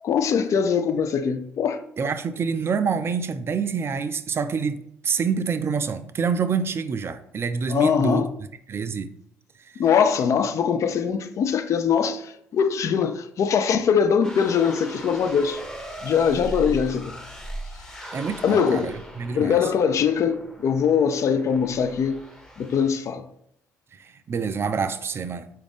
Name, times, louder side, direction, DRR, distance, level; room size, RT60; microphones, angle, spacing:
voice 1, 0.0-1.8 7.7-8.3 9.8-15.6 16.0-17.2 18.4-18.9 19.3-22.2 22.6-23.2, left 7 dB, 50° left, 0.4 m, -22 dB
voice 2, 2.0-8.2 8.7-9.1 9.6-9.8 18.1-19.7 23.9-25.5, right 5 dB, 40° right, 0.3 m, -27 dB
sound 1, 14.2-23.1, right 1 dB, 10° left, 0.8 m, -39 dB
4.0 x 2.4 x 3.5 m
hypercardioid pair, 55°, 7 cm